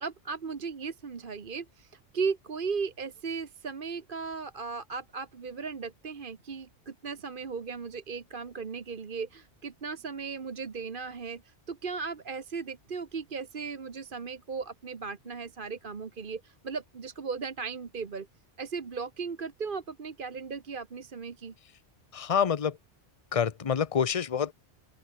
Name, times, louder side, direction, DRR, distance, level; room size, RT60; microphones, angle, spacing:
voice 1, 0.0-18.3 18.6-21.5, right 5 dB, 45° right, 1.4 m, -36 dB
voice 2, 22.1-22.8 23.3-24.5, left 7 dB, 35° left, 0.7 m, -27 dB
open air
omnidirectional pair, 1.2 m